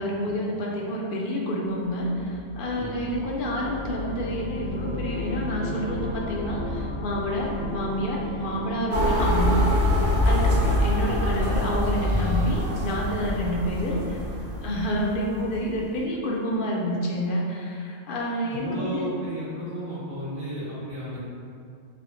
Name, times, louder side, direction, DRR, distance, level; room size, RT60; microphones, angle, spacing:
voice 1, 0.0-14.2 14.6-19.1, equal, 60° left, -2 dB, 0.6 m, -28 dB
sound 1, 1.8-10.6, left 1 dB, 35° right, 0.4 m, -35 dB
sound 2, 3.7-6.1 6.9-8.9 9.7-12.6, left 1 dB, 80° left, 1.0 m, -39 dB
Fire engine siren, 8.9-15.4, equal, 80° right, 1.1 m, -24 dB
voice 2, 18.5-21.2, right 1 dB, 65° right, -15 dB, 1.4 m, -33 dB
3.7 x 2.1 x 3.4 m, 2.3 s
omnidirectional pair, 1.3 m